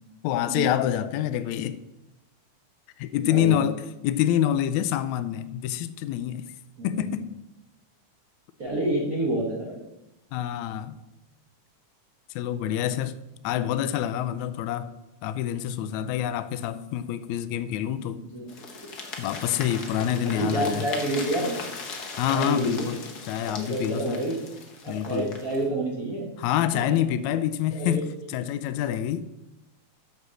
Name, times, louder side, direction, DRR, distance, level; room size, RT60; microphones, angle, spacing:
voice 1, 0.2-1.8 3.0-6.5 6.8-7.3 10.3-11.0 12.4-13.2 13.4-14.9 15.2-18.2 19.2-20.9 22.2-23.0 23.3-24.2 24.9-25.4 26.4-28.1 28.3-29.2, left 11 dB, 80° left, 1.9 m, -27 dB
voice 2, 3.2-3.6 6.8-7.1 8.6-9.8 18.2-18.9 20.2-21.6 22.3-22.9 23.4-24.4 24.8-26.3 26.7-27.0 27.7-28.1 28.9-29.0, right 1 dB, 45° right, 1.2 m, -29 dB
sound 1, 18.5-25.7, left 4 dB, 60° left, 1.0 m, -39 dB
11.5 x 4.2 x 6.3 m
omnidirectional pair, 3.5 m